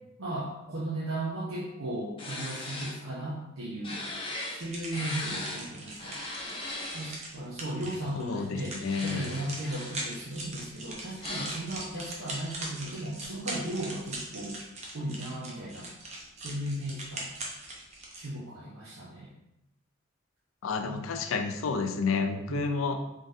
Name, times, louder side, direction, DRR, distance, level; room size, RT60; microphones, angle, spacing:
voice 1, 0.2-4.0 4.5-6.2 6.9-14.6 14.9-15.9 16.4-17.3 18.1-19.3 20.8-21.0 22.5-22.7, right 1 dB, 85° right, -6 dB, 0.7 m, -36 dB
sound 1, 2.2-2.9 3.8-4.6 4.9-5.6 6.0-7.2 8.7-10.0 11.2-11.5, left 2 dB, 25° left, 0.7 m, -38 dB
sound 2, 4.6-18.3, right 2 dB, 35° right, 0.7 m, -41 dB
voice 2, 8.2-9.2 20.6-23.0, left 4 dB, 80° left, 6 dB, 0.4 m, -30 dB
3.7 x 3.6 x 2.6 m, 0.87 s
head